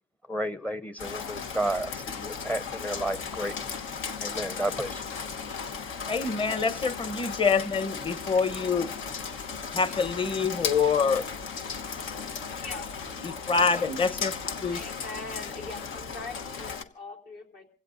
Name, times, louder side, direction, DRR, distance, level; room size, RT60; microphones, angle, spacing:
voice 1, 0.3-3.6 4.2-5.0, right 1 dB, 10° left, 12 dB, 0.6 m, -32 dB
Rain, 1.0-16.8, left 6 dB, 85° left, 1.2 m, -36 dB
voice 2, 6.1-8.9 9.7-11.3 13.2-14.8, left 5 dB, 25° left, 13 dB, 1.0 m, -26 dB
voice 3, 12.2-13.3 14.7-17.7, left 3 dB, 65° left, 1 dB, 3.3 m, -42 dB
27.5 x 16.5 x 2.6 m, 0.39 s
cardioid pair, 90°, 20 cm